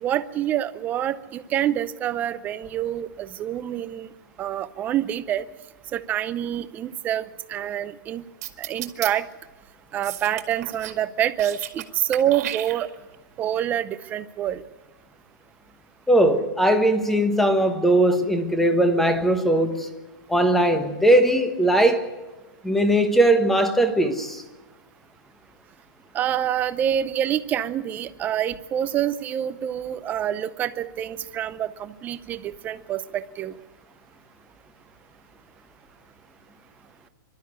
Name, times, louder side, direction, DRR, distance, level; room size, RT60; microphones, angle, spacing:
voice 1, 0.0-4.1 4.4-5.5 5.9-8.2 8.6-9.3 9.9-12.9 13.4-14.6 26.1-33.6, right 10 dB, 15° right, 0.6 m, -27 dB
sound 1, 8.4-9.1 10.0-11.0 11.3-11.9 12.1-13.2, right 13 dB, 45° right, 2.0 m, -33 dB
voice 2, 16.1-19.9 20.3-22.1 22.6-24.4, right 1 dB, ahead, 1.2 m, -19 dB
25.0 x 12.5 x 9.7 m
hypercardioid pair, 170°, 11 cm